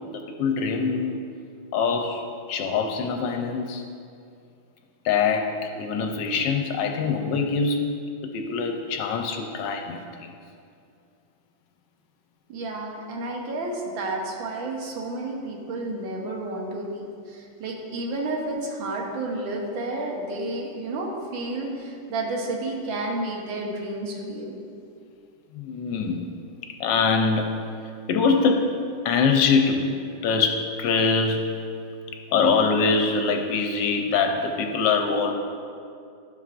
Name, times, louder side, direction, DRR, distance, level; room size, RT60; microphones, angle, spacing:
voice 1, 0.1-1.2 1.7-2.2 2.5-3.8 5.0-7.8 8.3-10.3 25.5-26.2 26.8-27.5 28.1-28.7 29.0-29.9 30.2-31.5 32.3-35.3, left 5 dB, 75° left, 4 dB, 1.2 m, -23 dB
voice 2, 12.5-24.6, right 2 dB, 80° right, -1 dB, 1.8 m, -31 dB
11.5 x 7.3 x 2.5 m, 2.4 s
omnidirectional pair, 2.1 m